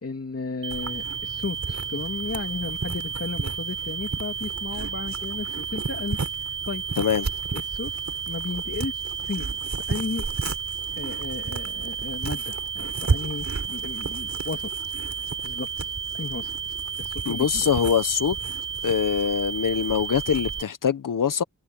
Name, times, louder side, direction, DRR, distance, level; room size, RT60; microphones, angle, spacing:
voice 1, 0.0-6.8 7.5-7.9 8.3-9.6 9.9-10.3 10.9-14.9 15.4-16.5 17.0-17.7, left 4 dB, 50° left, 2.8 m, -34 dB
sound 1, 0.6-20.6, right 7 dB, 80° right, 0.7 m, -33 dB
sound 2, 0.7-20.6, right 4 dB, 60° right, 4.8 m, -35 dB
voice 2, 7.0-7.3 17.2-18.4 18.8-21.4, left 7 dB, 85° left, 1.1 m, -23 dB
wide cardioid pair, 95°, 31 cm